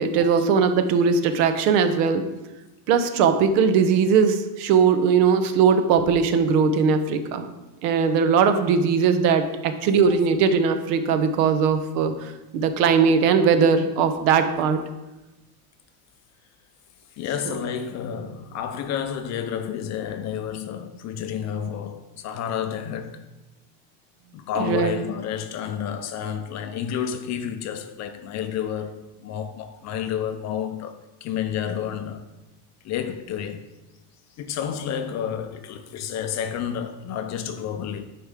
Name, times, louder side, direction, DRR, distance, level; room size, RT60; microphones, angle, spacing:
voice 1, 0.0-2.2 2.9-7.5 7.8-14.8 24.6-25.0, right 6 dB, 70° right, 1.0 m, -20 dB
voice 2, 17.2-23.3 24.3-32.3 32.8-33.8 34.4-38.1, left 8 dB, 35° left, 0.5 m, -30 dB
9.6 x 5.1 x 3.6 m
cardioid pair, 145°, 47 cm